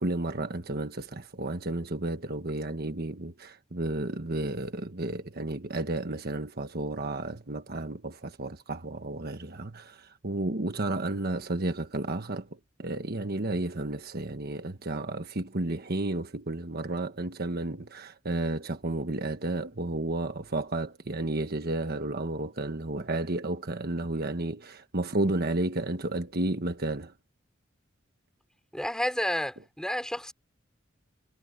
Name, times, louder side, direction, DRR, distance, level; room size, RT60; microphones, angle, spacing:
voice 1, 0.0-12.5 12.8-27.1, right 2 dB, 50° right, 1.4 m, -32 dB
voice 2, 28.7-30.3, equal, 5° left, 3.6 m, -30 dB
head